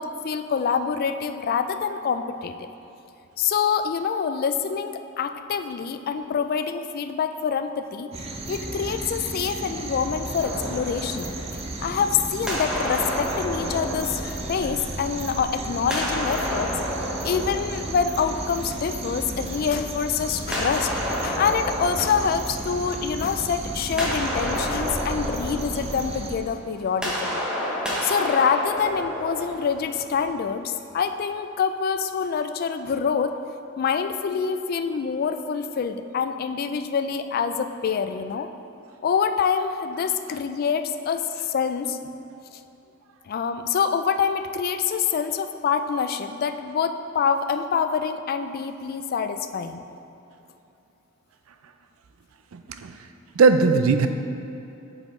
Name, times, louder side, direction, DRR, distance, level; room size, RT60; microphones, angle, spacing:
voice 1, 0.0-2.7 3.4-8.1 8.5-11.3 11.8-16.7 17.2-20.9 21.2-27.4 28.0-33.4 33.8-38.5 39.0-42.0 42.5-42.6 43.3-49.8, left 6 dB, 45° left, 9 dB, 0.3 m, -26 dB
sound 1, 8.1-26.4, right 2 dB, 30° right, 0.5 m, -33 dB
sound 2, 10.4-12.0 12.5-15.2 15.8-18.7 20.5-23.3 23.6-30.3, equal, 5° right, 0.9 m, -31 dB
voice 2, 52.5-52.9 53.3-54.1, right 4 dB, 85° right, 8 dB, 0.4 m, -18 dB
7.9 x 5.4 x 3.1 m, 2.8 s
head